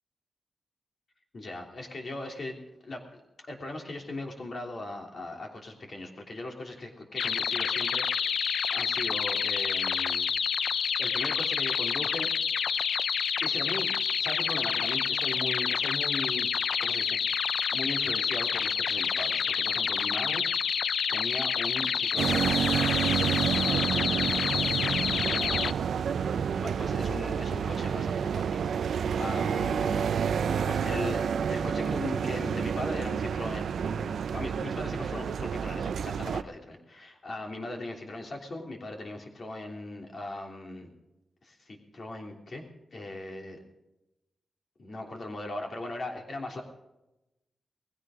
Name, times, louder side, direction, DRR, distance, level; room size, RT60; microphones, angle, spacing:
voice 1, 1.3-3.0 3.4-8.5 8.7-10.3 11.0-12.3 13.4-16.5 16.8-20.5 21.1-22.6 22.9-23.8 26.6-30.1 30.4-40.9 41.4-43.6 44.8-46.6, left 2 dB, 45° left, 1 dB, 3.2 m, -39 dB
sound 1, 7.2-25.7, left 7 dB, 80° left, 0.4 m, -28 dB
sound 2, 22.2-36.4, right 7 dB, 90° right, 0.5 m, -29 dB
19.5 x 16.0 x 3.8 m, 0.94 s
wide cardioid pair, 125°, 0 cm